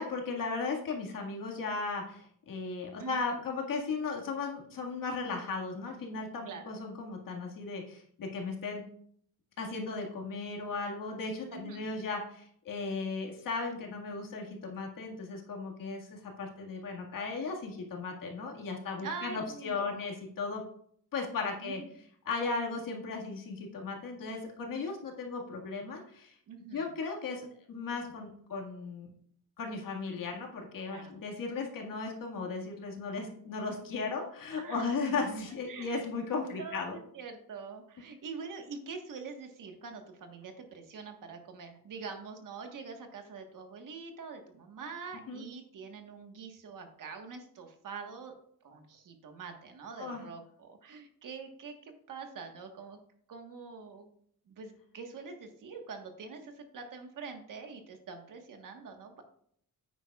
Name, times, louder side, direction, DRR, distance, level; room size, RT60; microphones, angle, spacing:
voice 1, 0.0-8.8 9.6-20.6 21.1-21.8 22.2-26.4 26.7-29.1 29.6-37.0 45.3-45.4 50.0-50.2, left 4 dB, 65° left, 1 dB, 1.9 m, -36 dB
voice 2, 6.4-6.8 11.5-12.0 19.0-19.9 21.6-21.9 26.5-26.9 30.9-31.1 34.6-35.0 35.7-36.0 36.6-48.3 48.6-53.0 53.3-54.1 54.5-59.2, right 5 dB, 60° right, 4 dB, 1.5 m, -45 dB
9.7 x 8.9 x 2.4 m, 0.64 s
wide cardioid pair, 160°, 36 cm